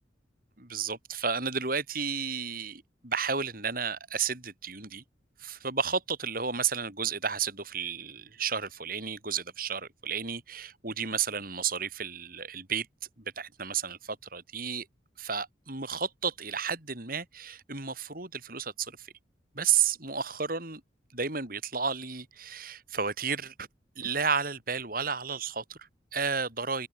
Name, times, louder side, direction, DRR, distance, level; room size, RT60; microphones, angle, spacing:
voice 1, 0.6-5.0 5.4-12.9 13.4-14.9 15.2-19.1 19.5-20.8 21.1-23.7 24.0-26.9, right 6 dB, 50° right, 5.7 m, -32 dB
open air
head